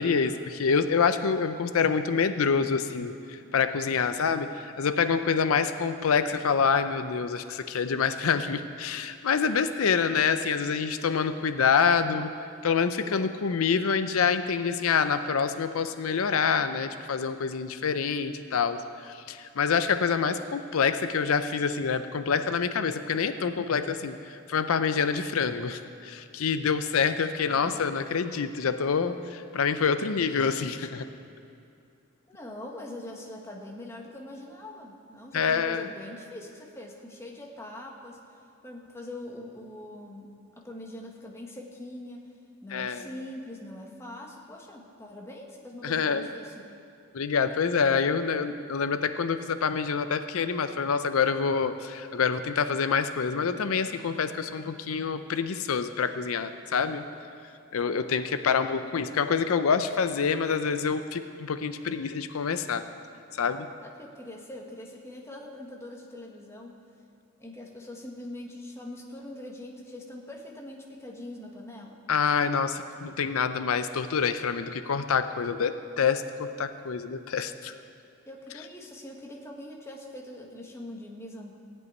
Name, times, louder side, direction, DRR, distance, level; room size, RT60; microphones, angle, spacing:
voice 1, 0.0-12.3 12.6-31.1 35.3-35.9 42.7-43.0 45.8-46.3 47.1-57.0 57.7-62.8 63.3-63.7 72.1-77.7, left 6 dB, 80° left, 10 dB, 0.5 m, -26 dB
voice 2, 27.4-27.9 32.3-38.2 38.6-42.3 42.6-46.7 63.8-66.8 67.4-72.0 78.2-81.5, left 1 dB, 10° left, 0 dB, 1.2 m, -43 dB
15.5 x 5.5 x 9.3 m, 2.5 s
head